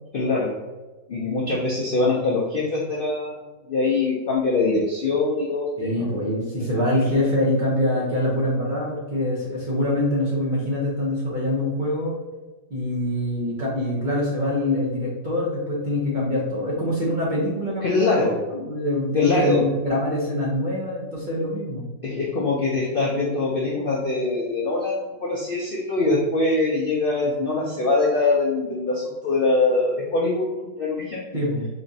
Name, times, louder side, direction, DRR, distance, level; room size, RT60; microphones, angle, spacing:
voice 1, 0.1-0.5 1.1-3.4 3.7-6.1 7.0-7.2 17.8-18.4 19.1-19.6 22.0-31.4, left 3 dB, 60° left, -4 dB, 0.6 m, -23 dB
voice 2, 5.8-12.2 12.7-21.8 31.3-31.7, left 1 dB, 45° right, -5 dB, 0.7 m, -24 dB
4.2 x 3.0 x 2.7 m, 1.2 s
omnidirectional pair, 1.7 m